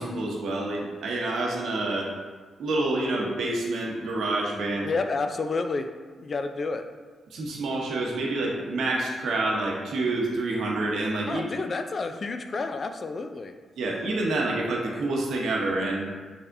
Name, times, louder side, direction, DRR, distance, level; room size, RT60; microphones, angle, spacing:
voice 1, 0.0-2.1 2.6-4.9 7.3-11.4 13.8-16.0, right 2 dB, 80° right, -1 dB, 0.8 m, -27 dB
voice 2, 4.8-5.9 6.2-6.8 11.3-13.5, left 3 dB, 50° left, 7 dB, 0.3 m, -30 dB
4.5 x 3.4 x 2.6 m, 1.4 s
cardioid pair, 60°, 0 cm